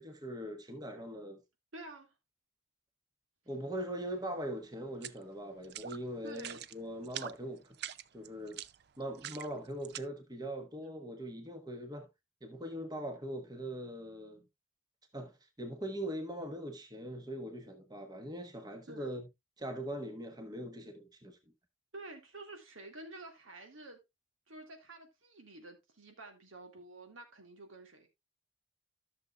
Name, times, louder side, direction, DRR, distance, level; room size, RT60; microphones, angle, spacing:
voice 1, 0.0-1.4 3.5-7.7 8.1-8.6 9.0-12.1 12.4-14.4 15.1-19.3 19.6-21.4, right 1 dB, 20° right, 1.2 m, -41 dB
voice 2, 1.7-2.1 6.2-6.7 18.9-19.1 21.9-24.0 24.5-28.1, right 2 dB, 85° right, 2.1 m, -49 dB
sound 1, 4.9-5.2 5.6-6.0 6.3-6.7 7.0-7.4 7.7-10.0, right 10 dB, 55° right, 0.4 m, -43 dB
14.0 x 6.7 x 2.4 m
head